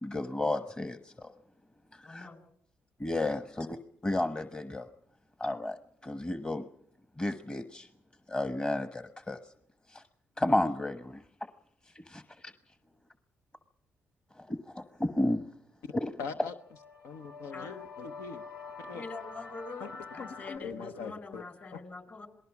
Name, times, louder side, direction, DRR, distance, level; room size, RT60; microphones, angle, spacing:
voice 1, 0.0-1.3 1.9-2.3 3.0-3.7 4.0-4.8 5.4-5.8 6.0-6.6 7.2-7.9 8.3-9.4 9.9-10.0 10.4-11.2 12.1-12.2 14.4-15.4 15.9-16.1, left 1 dB, 20° left, 9 dB, 1.2 m, -32 dB
voice 2, 2.0-2.4 17.5-17.8 18.9-19.9 20.1-22.3, left 3 dB, 40° left, 10 dB, 4.6 m, -44 dB
voice 3, 16.2-16.5 17.0-18.4 18.8-19.0 19.8-19.9 20.2-21.4 21.7-21.8, left 5 dB, 85° left, 7 dB, 0.9 m, -41 dB
sound 1, 16.4-20.6, left 4 dB, 70° left, 3.5 m, -46 dB
27.0 x 19.5 x 6.0 m, 0.68 s
supercardioid pair, 65°, 5 cm